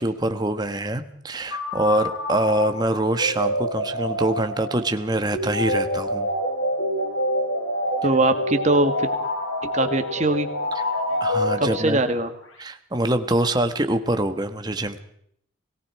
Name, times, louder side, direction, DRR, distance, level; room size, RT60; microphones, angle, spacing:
voice 1, 0.0-6.3 11.2-12.0 12.6-15.0, right 1 dB, 20° right, 7 dB, 1.3 m, -24 dB
sound 1, 1.5-12.2, left 1 dB, 85° left, 5.5 m, -27 dB
voice 2, 8.0-9.1 9.6-10.5 11.7-12.3, right 2 dB, 35° right, 7 dB, 2.0 m, -21 dB
30.0 x 18.5 x 4.7 m, 0.67 s
head